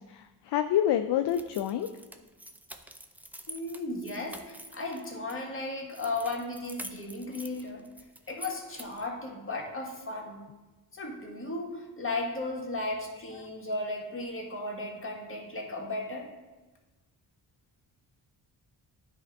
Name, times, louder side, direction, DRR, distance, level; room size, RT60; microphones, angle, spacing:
voice 1, 0.1-1.9, left 10 dB, 60° left, 8 dB, 0.5 m, -27 dB
sound 1, 1.3-5.4 5.9-9.1, equal, 5° right, 0.5 m, -47 dB
voice 2, 3.5-7.8 8.3-10.4 10.9-16.3, left 2 dB, 25° left, -1 dB, 1.8 m, -35 dB
9.9 x 3.6 x 4.7 m, 1.2 s
supercardioid pair, 55°, 47 cm